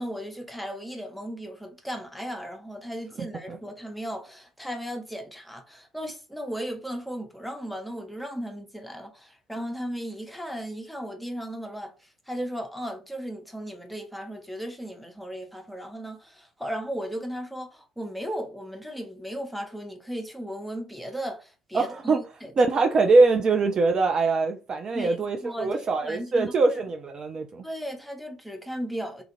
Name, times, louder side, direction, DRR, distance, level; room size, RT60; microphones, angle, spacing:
voice 1, 0.0-22.5 24.9-26.8 27.6-29.2, equal, ahead, 0.7 m, -36 dB
voice 2, 21.7-22.2 22.6-27.6, right 3 dB, 35° right, 0.3 m, -22 dB
2.7 x 2.3 x 2.9 m
figure-of-eight pair, 55°, 2 cm